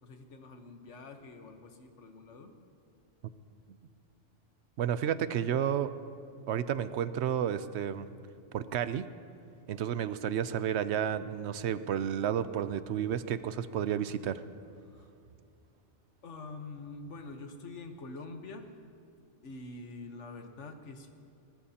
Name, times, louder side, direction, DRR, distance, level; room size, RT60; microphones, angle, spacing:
voice 1, 0.0-2.5 14.8-15.1 16.2-18.7 19.4-21.1, left 3 dB, 75° left, 6 dB, 1.4 m, -46 dB
voice 2, 4.8-5.9 6.5-8.1 8.5-9.1 9.7-14.4, right 9 dB, 70° right, 13 dB, 0.8 m, -31 dB
20.0 x 19.5 x 2.9 m, 2.6 s
omnidirectional pair, 1.2 m